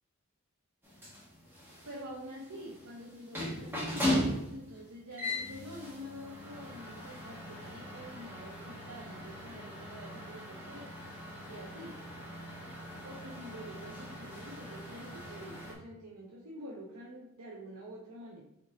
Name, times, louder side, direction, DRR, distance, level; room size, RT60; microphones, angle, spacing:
sound 1, 0.8-15.7, left 1 dB, 10° right, 1.1 m, -39 dB
voice 1, 1.8-11.0 11.5-12.0 13.0-18.4, equal, 80° right, -3 dB, 0.7 m, -47 dB
4.4 x 3.8 x 3.0 m, 0.86 s
head